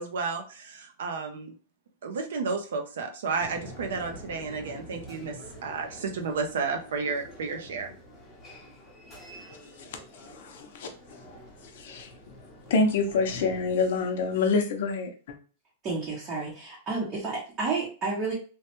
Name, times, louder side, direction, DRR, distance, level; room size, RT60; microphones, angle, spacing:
voice 1, 0.0-1.5 2.0-7.9, right 4 dB, 80° right, 4 dB, 0.5 m, -32 dB
sound 1, 3.4-14.7, left 1 dB, 10° left, 0.8 m, -47 dB
voice 2, 10.2-10.9 11.8-12.1 12.7-15.4, left 4 dB, 60° left, 5 dB, 0.6 m, -27 dB
voice 3, 15.8-18.3, right 4 dB, 20° right, -5 dB, 0.7 m, -31 dB
3.0 x 2.1 x 2.9 m, 0.38 s
supercardioid pair, 170°, 0 cm